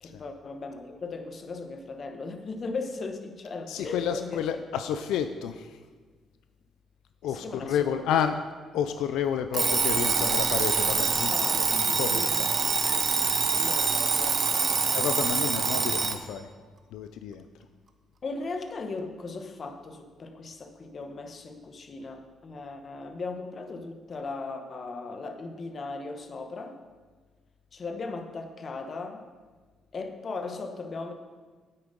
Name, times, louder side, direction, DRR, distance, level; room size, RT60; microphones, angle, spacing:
voice 1, 0.0-4.4 7.2-7.8 11.3-15.3 18.2-26.8 27.7-29.2 29.9-31.1, left 3 dB, 45° left, 6 dB, 1.2 m, -38 dB
voice 2, 3.7-5.8 7.2-8.4 8.7-12.5 14.9-16.5 16.9-17.4, left 8 dB, 90° left, 8 dB, 0.5 m, -30 dB
Alarm, 9.5-16.2, right 5 dB, 45° right, 1.0 m, -25 dB
9.8 x 8.4 x 5.2 m, 1.4 s
cardioid pair, 90°, 0 cm